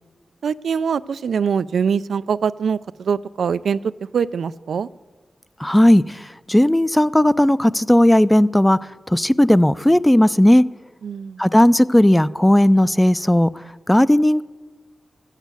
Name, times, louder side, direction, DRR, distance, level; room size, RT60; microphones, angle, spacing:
voice 1, 0.4-3.8 4.1-4.9 11.0-11.4, right 6 dB, 85° right, 16 dB, 0.3 m, -23 dB
voice 2, 5.6-8.8 9.1-10.6 11.4-13.5 13.9-14.4, left 1 dB, 10° left, 17 dB, 0.3 m, -15 dB
13.5 x 8.2 x 8.1 m, 1.3 s
wide cardioid pair, 90°, 0 cm